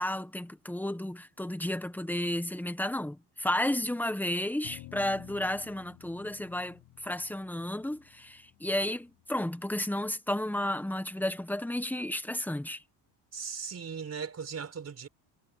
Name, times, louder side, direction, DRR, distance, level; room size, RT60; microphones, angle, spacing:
voice 1, 0.0-12.8, left 1 dB, 5° left, 1.3 m, -32 dB
sound 1, 4.6-9.2, left 16 dB, 80° left, 5.7 m, -52 dB
voice 2, 13.3-15.1, right 6 dB, 35° right, 4.8 m, -38 dB
cardioid pair, 125°, 46 cm